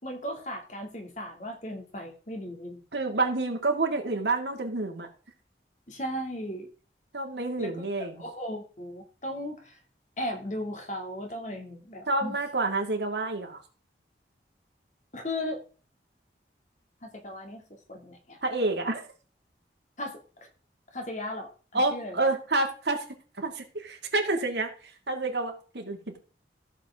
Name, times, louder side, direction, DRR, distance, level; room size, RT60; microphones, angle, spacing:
voice 1, 0.0-2.8 5.9-6.7 7.6-7.9 8.2-9.8 10.2-12.4 15.1-15.6 17.0-17.6 17.9-18.4 20.0-20.2 20.9-22.2, left 1 dB, 40° left, 2 dB, 2.5 m, -36 dB
voice 2, 2.9-5.1 7.1-8.2 12.1-13.6 18.4-19.1 21.7-23.0 23.4-26.2, right 2 dB, 75° right, 3 dB, 2.3 m, -28 dB
15.0 x 7.1 x 3.7 m, 0.38 s
head